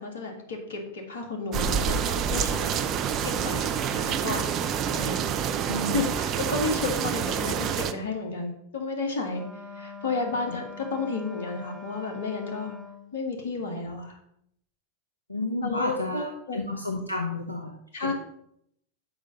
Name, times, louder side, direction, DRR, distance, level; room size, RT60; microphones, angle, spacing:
voice 1, 0.0-2.8 3.2-3.6 3.9-5.2 5.9-9.4 9.7-12.8 13.1-14.2 15.6-16.6 17.9-18.1, left 3 dB, 60° left, 2 dB, 1.6 m, -32 dB
sound 1, 1.5-7.9, right 8 dB, 35° right, 0.5 m, -27 dB
voice 2, 5.6-6.0 15.3-17.8 18.0-18.1, left 2 dB, 85° left, 3 dB, 0.7 m, -31 dB
Wind instrument woodwind instrument, 9.3-13.2, left 4 dB, 5° right, 0.9 m, -43 dB
6.8 x 5.0 x 5.4 m, 0.73 s
figure-of-eight pair, 90°, 0 cm